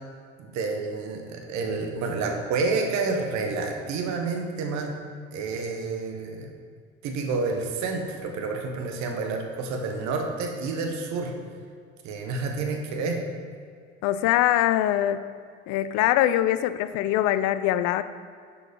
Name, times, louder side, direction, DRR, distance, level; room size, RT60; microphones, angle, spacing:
voice 1, 0.4-4.9 5.3-6.5 7.0-11.3 12.0-13.2, right 4 dB, 60° right, 3 dB, 1.2 m, -29 dB
voice 2, 14.0-15.3 15.7-18.0, left 13 dB, 65° left, 13 dB, 0.5 m, -23 dB
6.8 x 4.6 x 5.3 m, 2.2 s
hypercardioid pair, 60°, 32 cm